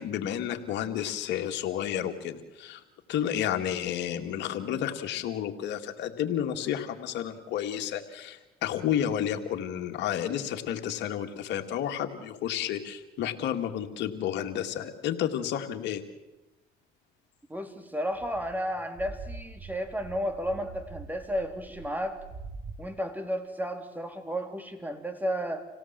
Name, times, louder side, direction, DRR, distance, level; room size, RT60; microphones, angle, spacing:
voice 1, 0.0-2.8 3.1-16.0, left 10 dB, 80° left, 5 dB, 2.1 m, -31 dB
voice 2, 17.5-22.2 22.8-25.6, equal, 10° right, 6 dB, 3.7 m, -33 dB
sound 1, 18.1-22.8, right 4 dB, 50° right, 2.7 m, -44 dB
27.5 x 17.0 x 7.6 m, 0.99 s
supercardioid pair, 75°, 18 cm